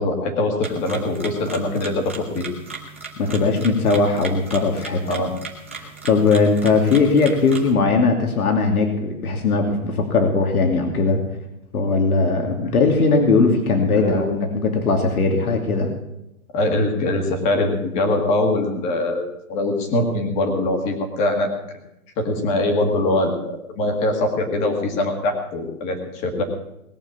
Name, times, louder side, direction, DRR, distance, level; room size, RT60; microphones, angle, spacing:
voice 1, 0.0-2.5 5.1-5.3 12.6-12.7 13.9-14.3 15.5-15.7 16.5-21.5 22.2-26.4, left 2 dB, 15° left, 4 dB, 1.8 m, -22 dB
sound 1, 0.6-7.7, right 4 dB, 10° right, 0.5 m, -37 dB
voice 2, 3.2-5.0 5.8-11.2 11.7-15.9, left 4 dB, 80° left, 3 dB, 2.9 m, -19 dB
20.0 x 6.9 x 8.6 m, 0.86 s
hypercardioid pair, 170°, 43 cm